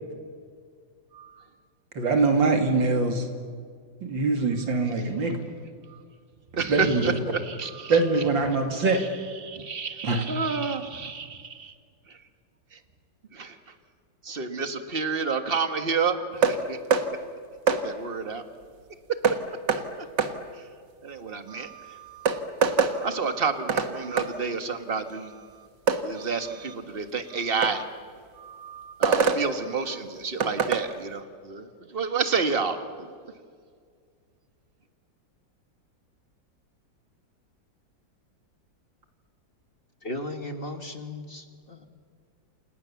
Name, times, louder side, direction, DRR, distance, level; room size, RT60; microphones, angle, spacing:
voice 1, 1.1-1.4 5.2-5.3 5.9-6.0 6.6-8.0 8.5-8.6 8.9-9.1 9.4-11.7 12.1-12.2 12.7-12.8 13.3-13.7 14.2-16.8 17.7-18.4 20.0-20.1 20.5-20.7 21.0-22.4 22.9-25.7 26.0-27.9 28.3-33.1, right 5 dB, 30° right, 8 dB, 1.8 m, -30 dB
voice 2, 2.0-3.3 4.0-5.4 6.7-7.2 7.9-9.0 10.0-10.3, right 3 dB, 90° right, 5 dB, 3.3 m, -23 dB
sound 1, 16.4-16.6 16.9-17.1 17.7-17.8 19.2-19.4 19.7-19.8 20.2-20.3 21.7-21.8 22.3-22.9 23.7-23.9 24.2-24.3 25.9-26.0 27.6-27.7 29.0-29.4 30.4-30.8, right 6 dB, 70° right, 2.2 m, -22 dB
voice 3, 40.0-41.9, left 1 dB, 30° left, 6 dB, 1.8 m, -36 dB
28.5 x 28.0 x 7.2 m, 2.1 s
omnidirectional pair, 2.0 m